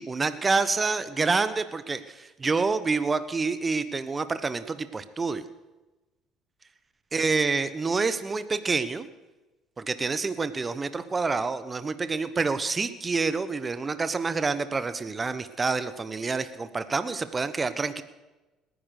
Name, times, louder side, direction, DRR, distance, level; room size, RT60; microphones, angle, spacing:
voice 1, 0.0-5.4 7.1-9.1 9.8-18.0, right 4 dB, 25° right, 13 dB, 1.0 m, -27 dB
19.0 x 10.0 x 6.6 m, 1.1 s
supercardioid pair, 85°, 0 cm